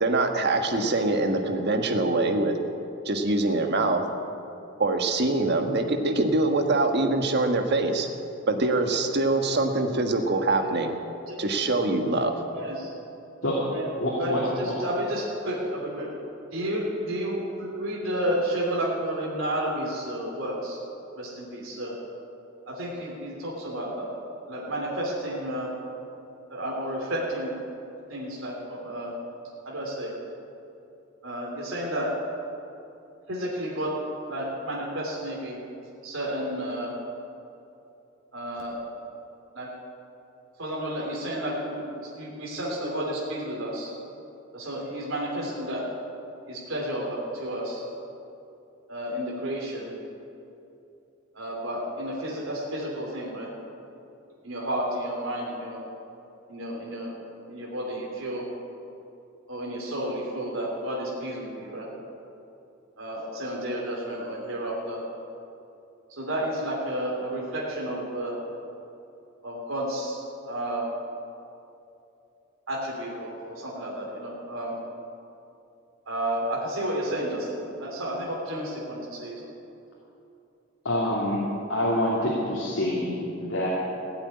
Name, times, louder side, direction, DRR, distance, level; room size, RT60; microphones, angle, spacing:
voice 1, 0.0-2.6 3.0-4.0 4.8-8.1 8.5-10.9 11.4-12.4, right 2 dB, 55° right, 5 dB, 1.4 m, -24 dB
voice 2, 12.5-12.9 13.7-13.9 14.2-16.1 16.5-20.8 21.2-21.9 22.7-24.1 24.5-25.7 26.5-27.5 28.1-29.1 29.6-30.1 31.2-32.1 33.3-34.0 34.3-35.6 36.0-36.9 38.3-38.8 39.5-39.7 40.6-43.9 44.5-45.9 46.5-47.8 48.9-49.9 51.3-53.5 54.4-55.8 56.5-57.1 57.4-58.5 59.5-61.9 63.0-65.0 66.1-68.4 69.4-70.8 72.7-74.8 76.1-79.6, right 1 dB, 85° right, -3 dB, 3.1 m, -31 dB
voice 3, 14.0-14.4 80.8-81.4 81.7-83.7, left 1 dB, 70° left, -6 dB, 2.8 m, -26 dB
16.5 x 8.0 x 9.6 m, 2.8 s
head